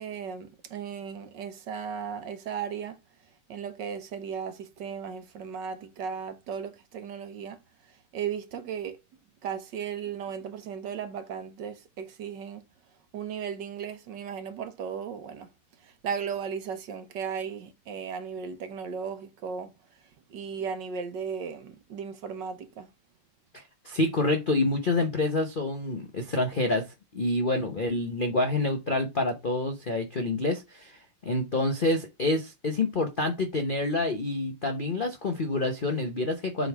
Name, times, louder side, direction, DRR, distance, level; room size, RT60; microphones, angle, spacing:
voice 1, 0.0-3.0 3.5-9.0 9.4-12.6 13.1-15.5 15.8-22.9, right 7 dB, 60° right, 1.5 m, -36 dB
voice 2, 23.5-26.9 27.1-36.7, left 2 dB, 80° left, 0.4 m, -27 dB
7.6 x 3.6 x 4.6 m
omnidirectional pair, 2.4 m